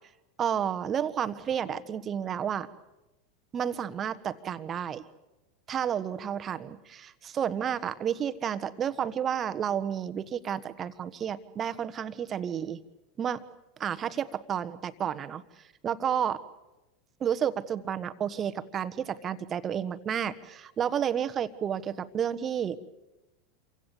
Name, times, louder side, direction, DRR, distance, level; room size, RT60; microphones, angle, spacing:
voice 1, 0.4-2.7 3.5-5.0 5.7-12.8 13.2-13.4 13.8-15.4 15.8-16.4 17.2-22.8, right 8 dB, 30° right, 12 dB, 1.4 m, -31 dB
29.0 x 24.5 x 7.2 m, 0.99 s
figure-of-eight pair, 85°, 0 cm